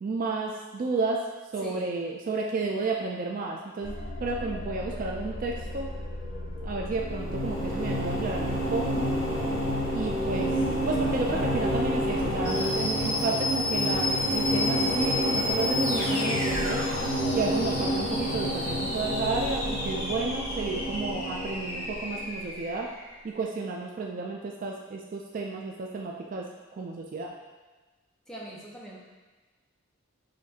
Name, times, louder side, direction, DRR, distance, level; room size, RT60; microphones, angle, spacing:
voice 1, 0.0-1.2 1.5-5.9 6.6-9.1 9.9-10.5 10.9-16.9 17.3-22.9 23.2-26.4 26.7-27.3, right 3 dB, 40° right, -1 dB, 0.3 m, -32 dB
voice 2, 1.6-1.9 28.3-29.0, right 1 dB, 5° left, -5 dB, 0.7 m, -41 dB
sound 1, 3.8-23.2, left 2 dB, 35° left, 0.9 m, -33 dB
sound 2, 6.9-22.2, equal, 80° left, 1.3 m, -29 dB
6.5 x 2.6 x 2.7 m, 1.3 s
head